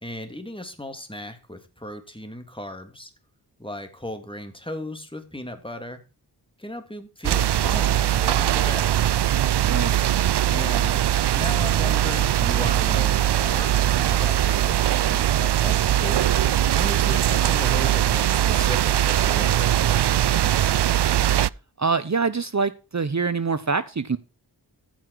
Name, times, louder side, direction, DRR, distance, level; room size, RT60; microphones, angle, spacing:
voice 1, 0.0-3.1 3.6-6.0 6.6-8.9 10.5-11.0 11.3-13.8 14.1-16.2 16.7-20.1, left 1 dB, 10° left, 3.0 m, -36 dB
sound 1, 7.2-21.5, right 12 dB, 75° right, 0.5 m, -21 dB
sound 2, 13.4-20.5, left 5 dB, 90° left, 3.7 m, -51 dB
voice 2, 21.8-24.2, right 4 dB, 40° right, 0.9 m, -24 dB
14.5 x 5.9 x 4.7 m
wide cardioid pair, 50°, 42 cm